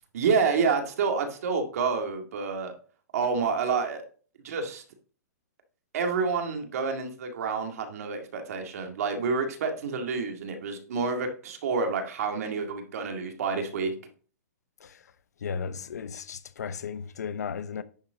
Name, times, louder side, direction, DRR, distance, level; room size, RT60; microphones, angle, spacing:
voice 1, 0.1-2.7 3.1-4.0 4.4-4.8 5.9-13.9, right 5 dB, 65° right, 1.9 m, -28 dB
voice 2, 15.4-17.8, left 6 dB, 90° left, 0.8 m, -35 dB
10.5 x 4.9 x 3.9 m
hypercardioid pair, 150°, 9 cm